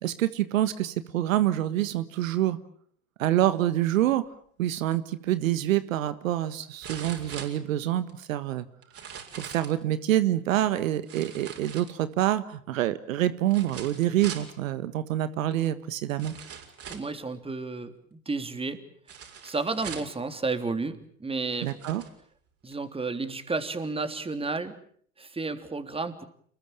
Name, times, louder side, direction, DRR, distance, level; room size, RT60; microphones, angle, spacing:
voice 1, 0.0-2.6 3.2-4.2 4.6-8.6 9.3-16.3 21.6-22.0, right 13 dB, 70° right, 13 dB, 1.6 m, -26 dB
sound 1, 5.4-5.5 6.8-8.1 8.8-9.8 11.1-12.3 13.5-14.5 15.5-15.6 16.2-17.2 19.1-20.2 21.0-21.1 21.5-22.1 22.7-22.8, right 7 dB, 35° right, 6.6 m, -42 dB
voice 2, 16.9-18.8 19.4-21.7 22.6-24.8 25.2-26.2, right 3 dB, 15° right, 9 dB, 3.2 m, -32 dB
29.0 x 21.5 x 9.0 m, 0.62 s
hypercardioid pair, 80°, 41 cm